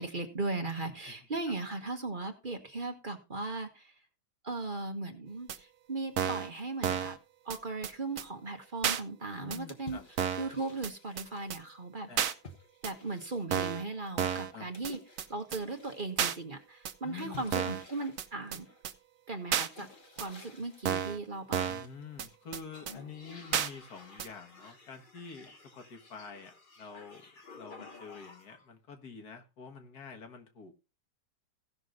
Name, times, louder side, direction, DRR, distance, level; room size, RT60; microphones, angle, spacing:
voice 1, 0.0-3.9 4.4-7.2 7.4-10.0 10.4-12.1 12.8-15.0 15.3-18.6 19.3-19.9 20.2-21.7, right 3 dB, 35° right, 1.4 m, -37 dB
sound 1, 5.5-5.6 6.2-6.5 6.8-7.2 7.5-7.6 7.8-7.9 8.2-8.3 8.8-9.0 9.5-9.6 10.2-10.5 10.8-10.9 11.2-11.3 11.5-11.6 12.2-12.3 12.8-12.9 13.5-13.8 14.2-14.5 14.8-14.9 15.2-15.3 15.5-15.6 16.2-16.4 16.9-17.0 17.5-17.8 18.2-18.3 18.5-18.6 18.9-19.0 19.5-19.7 20.2-20.3 20.9-21.2 21.5-21.9 22.2-22.3 22.5-22.6 22.9-23.0 23.5-23.7 24.2-24.3, right 9 dB, 70° right, 1.3 m, -31 dB
voice 2, 9.4-10.1 12.1-12.3 14.5-14.7 17.0-17.8 21.6-30.7, left 5 dB, 75° left, 2.0 m, -47 dB
sound 2, 9.7-11.5 12.4-13.7 14.7-16.1 17.2-18.9 19.5-21.1 21.7-22.3 22.7-28.7, left 3 dB, 35° left, 1.5 m, -53 dB
16.0 x 6.2 x 3.9 m
omnidirectional pair, 1.7 m